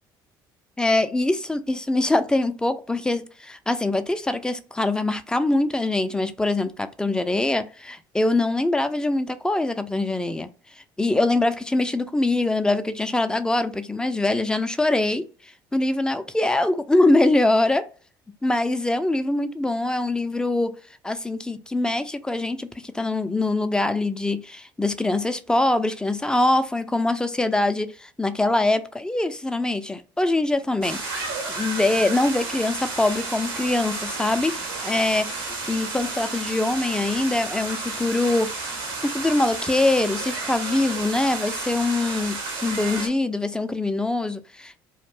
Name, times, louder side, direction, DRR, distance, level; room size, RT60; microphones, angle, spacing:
voice 1, 0.8-10.5 11.0-15.2 15.7-17.9 18.4-20.7 21.0-38.5 39.0-44.8, left 2 dB, 5° left, 0.3 m, -23 dB
sound 1, 30.8-43.1, right 3 dB, 80° right, 0.8 m, -32 dB
2.4 x 2.1 x 3.3 m
hypercardioid pair, 60°, 11 cm